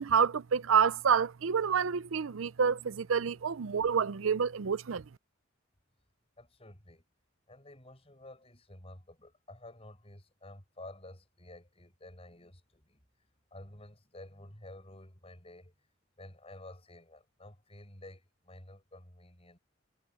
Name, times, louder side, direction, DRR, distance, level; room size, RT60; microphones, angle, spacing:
voice 1, 0.0-5.0, right 6 dB, 75° right, 0.6 m, -28 dB
voice 2, 6.4-7.0 7.5-13.0 13.5-15.7 16.2-19.6, left 1 dB, 30° left, 6.7 m, -51 dB
head